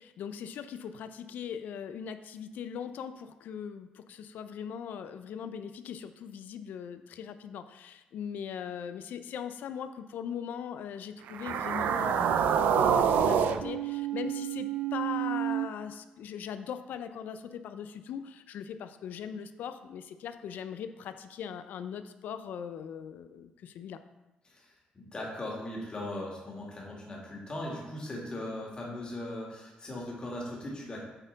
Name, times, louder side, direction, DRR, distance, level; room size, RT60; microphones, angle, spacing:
voice 1, 0.0-24.0, left 8 dB, 75° left, 10 dB, 0.5 m, -40 dB
sound 1, 11.3-15.7, right 8 dB, 85° right, 0.4 m, -27 dB
voice 2, 24.4-31.0, left 1 dB, 30° left, -3 dB, 2.1 m, -39 dB
8.9 x 4.3 x 4.0 m, 1.0 s
cardioid pair, 105°, 3 cm